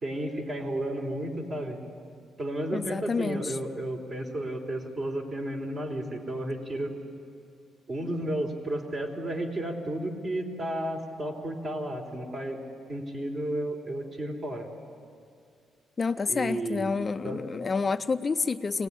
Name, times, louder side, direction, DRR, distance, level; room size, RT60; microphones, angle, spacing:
voice 1, 0.0-1.8 2.4-6.9 7.9-12.6 12.9-14.7 16.3-16.9 17.2-17.4, right 1 dB, 45° right, 2 dB, 3.8 m, -32 dB
voice 2, 2.7-3.6 16.0-18.9, left 4 dB, 35° left, 10 dB, 0.5 m, -29 dB
24.0 x 18.0 x 10.0 m, 2.3 s
cardioid pair, 90°, 0 cm